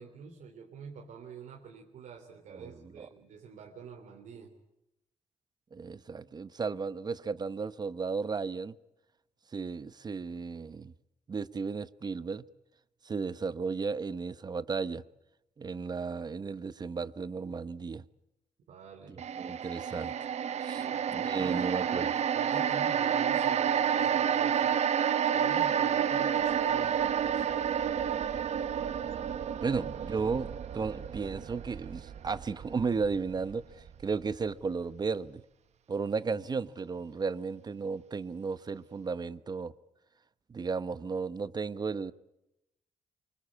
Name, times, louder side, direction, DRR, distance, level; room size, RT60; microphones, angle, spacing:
voice 1, 0.0-4.5 18.7-19.1 20.7-24.8 25.3-27.5, right 6 dB, 85° right, 3.0 m, -47 dB
voice 2, 5.7-8.7 9.5-10.9 11.3-12.4 13.0-15.0 15.6-18.0 19.4-20.1 20.6-22.1 29.6-35.4 35.9-39.7 40.5-42.1, right 5 dB, 35° right, 0.9 m, -34 dB
sound 1, 19.2-33.5 33.9-34.0, right 8 dB, 60° right, 0.9 m, -30 dB
25.5 x 24.0 x 8.5 m
cardioid pair, 130°, 13 cm